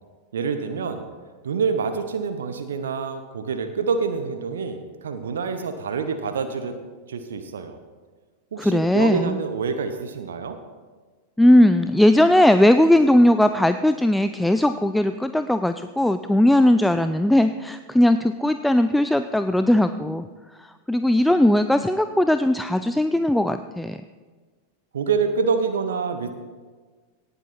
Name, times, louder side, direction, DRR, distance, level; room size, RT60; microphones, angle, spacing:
voice 1, 0.3-1.1 1.4-6.8 7.1-7.8 8.5-10.6 24.9-26.3, right 5 dB, 65° right, 8 dB, 0.9 m, -26 dB
voice 2, 8.6-9.4 11.4-20.2 20.9-24.0, left 1 dB, 5° left, 10 dB, 0.4 m, -18 dB
17.5 x 8.2 x 4.2 m, 1.4 s
figure-of-eight pair, 90°, 0 cm